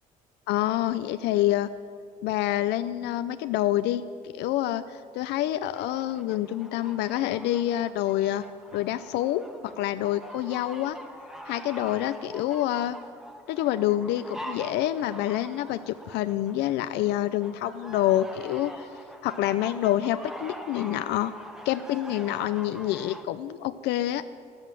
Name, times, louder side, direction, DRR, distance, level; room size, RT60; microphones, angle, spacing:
voice 1, 0.5-1.7 2.2-4.0 4.3-8.4 8.7-9.4 9.8-11.0 11.5-13.0 13.5-18.9 19.2-21.3 21.7-24.2, left 13 dB, 85° left, 12 dB, 0.5 m, -27 dB
sound 1, 5.7-23.2, equal, 5° right, 1.3 m, -44 dB
13.0 x 12.5 x 7.5 m, 2.4 s
cardioid pair, 110°, 17 cm